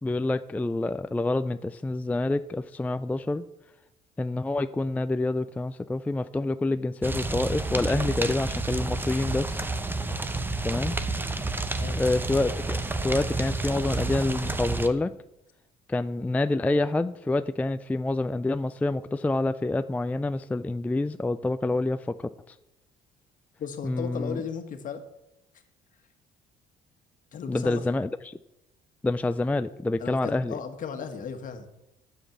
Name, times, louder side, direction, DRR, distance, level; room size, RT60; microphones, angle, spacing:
voice 1, 0.0-3.4 4.2-9.6 10.6-11.0 11.9-15.1 15.9-22.6 23.8-24.4 27.5-28.3 29.0-30.6, left 2 dB, 10° left, 11 dB, 0.3 m, -27 dB
sound 1, 7.0-14.9, right 2 dB, 10° right, 0.9 m, -30 dB
voice 2, 23.6-25.0 27.3-27.9 30.0-31.7, left 6 dB, 50° left, 7 dB, 1.6 m, -36 dB
10.0 x 7.4 x 7.0 m, 0.90 s
cardioid pair, 110°, 17 cm